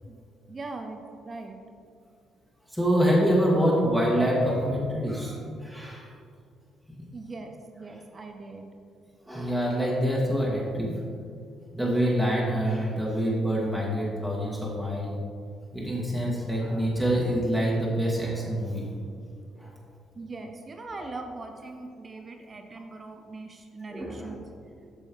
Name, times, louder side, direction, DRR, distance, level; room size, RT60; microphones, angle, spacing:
voice 1, 0.5-1.6 7.1-8.6 20.1-24.5, right 3 dB, 35° right, 5 dB, 0.6 m, -40 dB
voice 2, 2.7-6.1 7.0-7.1 7.9-8.0 9.3-11.0 11.7-15.2 15.7-18.9 19.6-19.7 21.0-21.1 23.9-24.4, equal, ahead, -5 dB, 1.7 m, -26 dB
8.3 x 6.3 x 3.0 m, 2.3 s
figure-of-eight pair, 40°, 0 cm